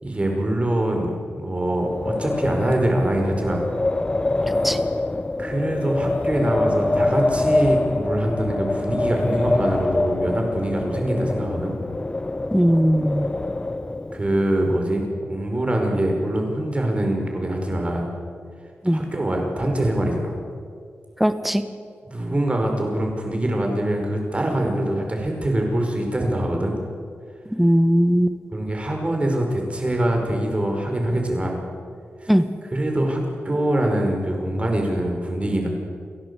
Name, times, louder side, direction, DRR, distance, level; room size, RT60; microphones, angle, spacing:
voice 1, 0.0-1.1 1.4-3.7 5.4-11.8 14.1-18.1 18.9-20.4 22.1-26.8 28.5-31.6 32.2-32.3 32.7-35.7, right 1 dB, 30° right, 2 dB, 5.2 m, -24 dB
Wind, 1.7-14.4, left 2 dB, 25° left, 0.8 m, -25 dB
voice 2, 12.5-13.3 18.8-19.0 21.2-21.6 27.6-28.4 32.3-32.5, equal, 5° right, 10 dB, 1.4 m, -18 dB
29.5 x 11.0 x 8.3 m, 2.1 s
wide cardioid pair, 80°, 4 cm